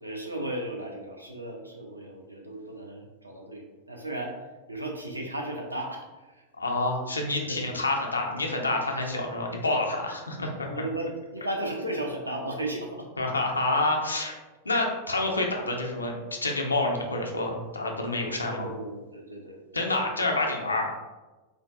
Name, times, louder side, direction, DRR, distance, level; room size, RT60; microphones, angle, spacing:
voice 1, 0.0-4.4 4.7-6.5 7.0-7.6 10.6-13.1 13.7-13.8 18.5-19.9, right 1 dB, 85° right, 0 dB, 0.4 m, -35 dB
voice 2, 6.6-10.7 13.2-14.4 14.6-18.7 19.7-20.9, left 2 dB, 80° left, 1 dB, 0.4 m, -28 dB
2.5 x 2.1 x 2.3 m, 1.2 s
figure-of-eight pair, 90°, 0 cm